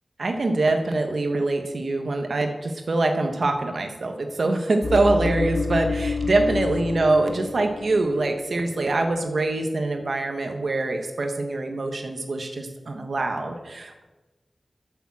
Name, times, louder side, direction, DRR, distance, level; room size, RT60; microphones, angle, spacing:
voice 1, 0.2-14.0, right 2 dB, 75° right, 5 dB, 1.2 m, -24 dB
sound 1, 4.8-8.3 8.6-8.9, left 4 dB, 90° left, 0.3 m, -29 dB
10.0 x 7.1 x 7.3 m, 1.1 s
wide cardioid pair, 85°, 0 cm